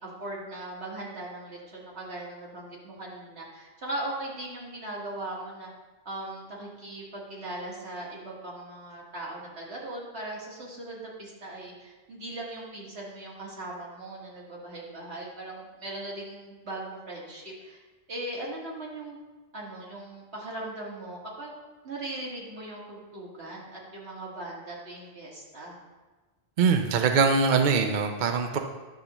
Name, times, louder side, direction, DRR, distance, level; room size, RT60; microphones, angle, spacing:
voice 1, 0.0-5.7 6.1-17.8 18.1-19.2 19.5-21.5 21.8-25.8, right 1 dB, 80° right, -4 dB, 2.0 m, -39 dB
voice 2, 26.6-28.6, right 5 dB, 55° right, 5 dB, 0.6 m, -23 dB
10.5 x 6.7 x 2.9 m, 1.2 s
omnidirectional pair, 1.1 m